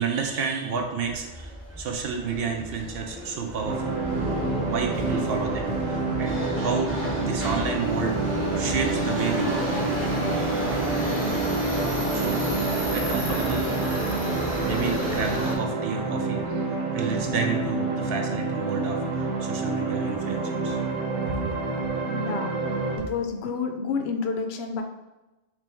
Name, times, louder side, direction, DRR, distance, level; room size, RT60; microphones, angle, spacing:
voice 1, 0.0-4.0 4.6-9.8 12.1-12.4 12.9-13.7 14.6-20.8 21.4-21.6, right 5 dB, 65° right, 3 dB, 0.7 m, -31 dB
Subway metro underground, 1.1-15.5, equal, 15° right, 0.7 m, -31 dB
sound 1, 3.6-23.0, right 3 dB, 85° right, 1.2 m, -28 dB
voice 2, 22.1-22.6 22.9-24.8, left 5 dB, 70° left, 4 dB, 0.8 m, -29 dB
3.3 x 3.3 x 3.4 m, 1.1 s
omnidirectional pair, 1.2 m